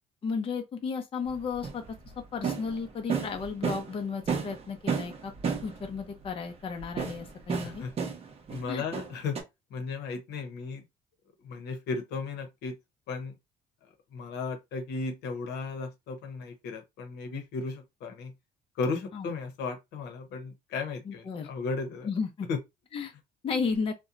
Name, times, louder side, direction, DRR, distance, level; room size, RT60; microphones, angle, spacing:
voice 1, 0.2-1.8 2.3-5.3 5.6-7.9 8.7-8.8 19.1-19.3 21.1-21.5 22.0-22.5 22.9-23.1 23.4-23.9, left 5 dB, 35° left, 0.5 m, -33 dB
sound 1, 1.3-4.0 4.3-6.0 6.8-8.6 8.9-9.4, right 5 dB, 35° right, 0.6 m, -32 dB
voice 2, 7.6-7.9 8.5-9.4 9.7-10.8 11.4-12.7 13.1-13.4 14.1-18.3 18.8-22.1 22.5-22.6, left 4 dB, 80° left, 0.8 m, -35 dB
2.7 x 2.2 x 2.4 m
cardioid pair, 110°, 17 cm